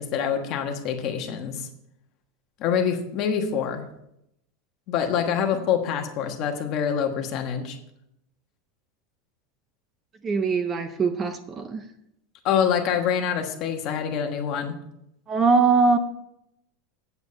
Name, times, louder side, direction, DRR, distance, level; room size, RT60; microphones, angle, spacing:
voice 1, 0.0-1.7 2.6-3.9 4.9-7.8 12.4-14.7, left 8 dB, 40° left, 4 dB, 1.3 m, -25 dB
voice 2, 10.2-11.9 15.3-16.0, right 4 dB, 20° right, 9 dB, 0.6 m, -22 dB
8.2 x 8.0 x 5.2 m, 0.79 s
supercardioid pair, 165°, 0 cm